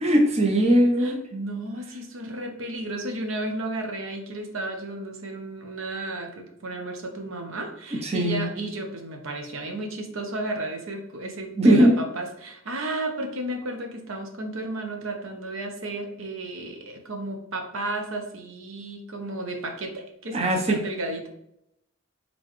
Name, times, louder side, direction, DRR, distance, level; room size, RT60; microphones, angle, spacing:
voice 1, 0.0-1.2 8.0-8.5 11.6-12.0 20.3-20.8, right 1 dB, 30° right, 2 dB, 0.6 m, -19 dB
voice 2, 1.0-21.3, right 2 dB, 75° right, 4 dB, 0.8 m, -33 dB
3.8 x 3.7 x 3.1 m, 0.77 s
head